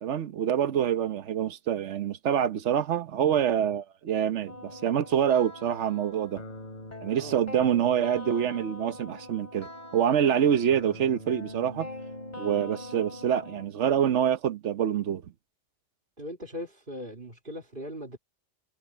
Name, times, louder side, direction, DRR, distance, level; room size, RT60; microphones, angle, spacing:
voice 1, 0.0-6.4 7.0-11.9 12.4-15.2, right 9 dB, 75° right, 1.2 m, -26 dB
sound 1, 4.5-13.7, left 1 dB, 35° left, 3.5 m, -42 dB
voice 2, 16.2-18.2, equal, 45° right, 3.1 m, -39 dB
omnidirectional pair, 1.2 m